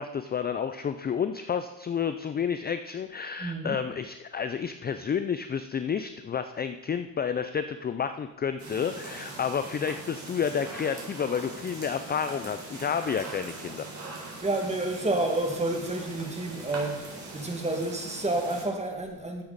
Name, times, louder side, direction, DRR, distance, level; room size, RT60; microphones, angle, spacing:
voice 1, 0.0-13.9, left 7 dB, 25° left, 10 dB, 0.4 m, -30 dB
voice 2, 3.4-3.8 14.4-19.4, right 2 dB, 15° right, 3 dB, 2.0 m, -30 dB
sound 1, 8.6-18.6, right 2 dB, 35° right, 4.5 m, -41 dB
13.5 x 8.5 x 4.0 m, 0.98 s
cardioid pair, 105°, 47 cm